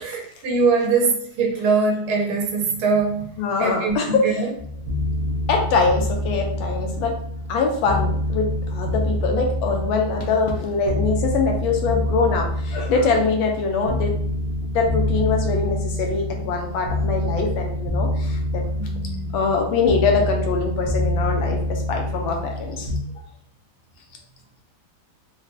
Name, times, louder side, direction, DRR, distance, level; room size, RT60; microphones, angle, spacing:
voice 1, 0.0-3.3 3.6-4.5 18.8-19.5, right 4 dB, 80° right, 0 dB, 1.5 m, -22 dB
voice 2, 3.4-4.2 5.5-7.1 7.5-14.1 14.7-18.6 19.3-22.9, left 4 dB, 75° left, 2 dB, 1.5 m, -23 dB
sound 1, 4.6-23.0, left 1 dB, 60° right, 1.2 m, -26 dB
4.0 x 2.2 x 2.6 m, 0.64 s
omnidirectional pair, 2.2 m